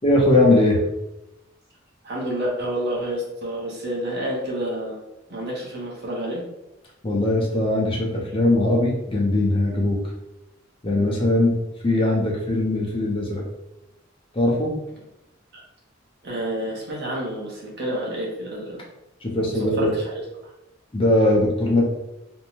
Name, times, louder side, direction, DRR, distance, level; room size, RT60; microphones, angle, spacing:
voice 1, 0.0-0.8 7.0-10.0 10.8-11.6 11.8-13.4 14.3-14.7 19.2-19.9 20.9-21.8, left 1 dB, 30° left, -2 dB, 0.6 m, -20 dB
voice 2, 2.0-5.0 5.3-6.4 16.2-18.8 19.5-20.2, right 1 dB, 55° right, -3 dB, 0.7 m, -29 dB
2.6 x 2.1 x 3.0 m, 0.89 s
head